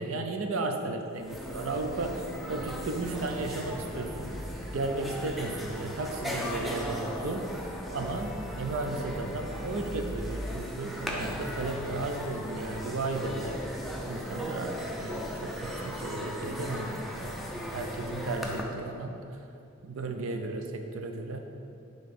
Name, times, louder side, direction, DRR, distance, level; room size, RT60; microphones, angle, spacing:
voice 1, 0.0-4.3 4.7-7.5 7.9-13.6 14.0-19.4 19.8-21.4, right 2 dB, 70° right, 5 dB, 0.6 m, -34 dB
sound 1, 0.9-1.0 1.1-18.6, equal, ahead, 0.5 m, -37 dB
5.7 x 3.7 x 5.3 m, 2.6 s
head